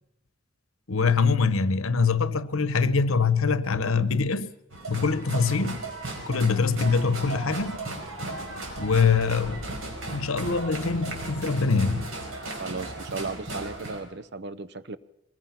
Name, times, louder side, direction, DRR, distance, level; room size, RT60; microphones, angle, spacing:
voice 1, 0.9-4.5 4.9-5.8 6.3-7.9 8.8-9.6 10.1-12.1, left 5 dB, 80° left, 1.0 m, -24 dB
sound 1, 4.7-14.0, right 2 dB, 70° right, 5.0 m, -36 dB
voice 2, 12.6-15.0, right 3 dB, 50° right, 0.8 m, -35 dB
23.5 x 20.0 x 5.9 m
head